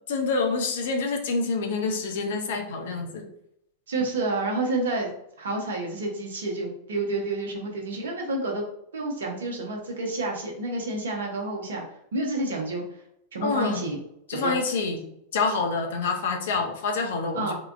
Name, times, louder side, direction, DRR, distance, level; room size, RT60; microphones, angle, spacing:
voice 1, 0.1-3.2 13.4-13.9 14.3-15.0 15.3-17.5, left 4 dB, 60° left, 3 dB, 0.6 m, -27 dB
voice 2, 3.9-5.1 5.4-8.6 8.9-11.8 12.1-12.8 13.3-14.0 14.3-14.5 17.3-17.5, right 2 dB, 65° right, 1 dB, 0.8 m, -29 dB
3.5 x 2.2 x 2.5 m, 0.76 s
figure-of-eight pair, 90°, 0 cm